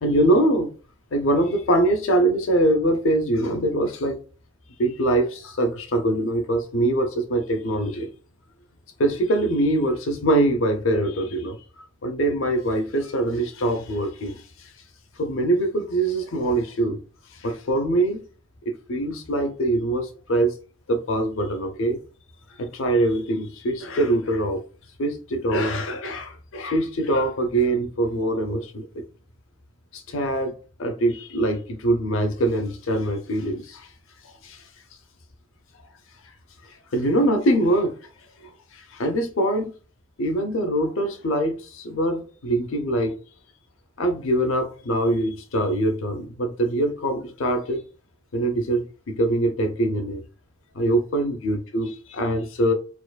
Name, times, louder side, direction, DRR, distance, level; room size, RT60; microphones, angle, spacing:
voice 1, 0.0-0.7 1.1-4.2 4.8-8.1 9.0-11.6 12.0-14.7 15.2-17.0 17.3-18.2 18.7-20.6 20.9-22.0 22.6-24.6 25.0-29.0 29.9-33.9 34.4-34.6 36.9-38.0 38.4-39.7 40.2-43.2 44.0-47.8 48.3-50.2 50.7-52.7, right 1 dB, 65° left, 0.6 m, -23 dB
4.4 x 2.4 x 2.2 m
head